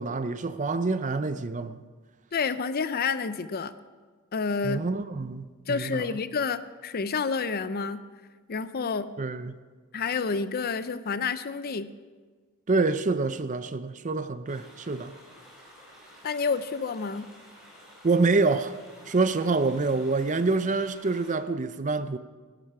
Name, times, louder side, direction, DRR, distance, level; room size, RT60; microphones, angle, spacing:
voice 1, 0.0-1.8 4.6-6.2 9.2-9.6 12.7-15.1 18.0-18.7 19.1-22.2, right 3 dB, 35° right, 0.6 m, -26 dB
voice 2, 2.3-3.7 4.3-4.8 5.7-8.0 8.5-9.1 9.9-11.9 16.2-17.3, left 5 dB, 45° left, 0.5 m, -29 dB
sound 1, 14.5-21.3, equal, ahead, 4.9 m, -52 dB
17.5 x 12.0 x 4.8 m
head